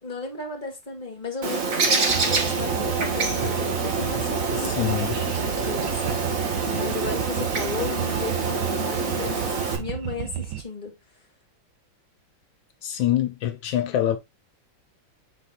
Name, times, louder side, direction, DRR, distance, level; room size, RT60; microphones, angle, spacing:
voice 1, 0.0-6.0 6.7-10.9, left 3 dB, 25° left, 2.6 m, -35 dB
Bird, 1.4-9.8, right 4 dB, 45° right, 1.8 m, -26 dB
sound 1, 2.1-10.6, right 12 dB, 65° right, 1.5 m, -32 dB
voice 2, 4.5-5.2 12.8-14.2, left 11 dB, 80° left, 1.4 m, -25 dB
6.9 x 4.2 x 3.9 m
omnidirectional pair, 2.1 m